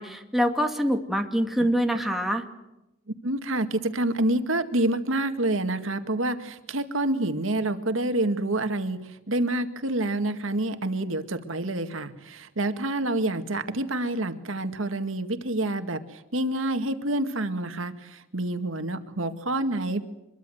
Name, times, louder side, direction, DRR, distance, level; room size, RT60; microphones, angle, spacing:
voice 1, 0.0-2.4, equal, ahead, 3 dB, 2.2 m, -25 dB
voice 2, 3.2-20.0, right 1 dB, 85° right, 8 dB, 2.0 m, -27 dB
25.0 x 22.5 x 7.9 m, 0.92 s
head